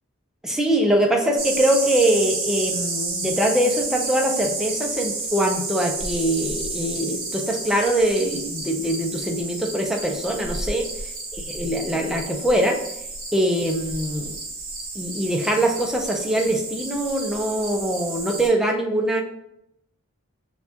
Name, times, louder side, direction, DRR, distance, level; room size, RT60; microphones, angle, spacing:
voice 1, 0.4-10.9 11.3-12.8 13.3-14.4 14.9-19.2, right 1 dB, ahead, 1 dB, 0.4 m, -23 dB
sound 1, 1.4-18.5, right 3 dB, 40° right, 1.0 m, -31 dB
6.7 x 2.3 x 2.8 m, 0.80 s
head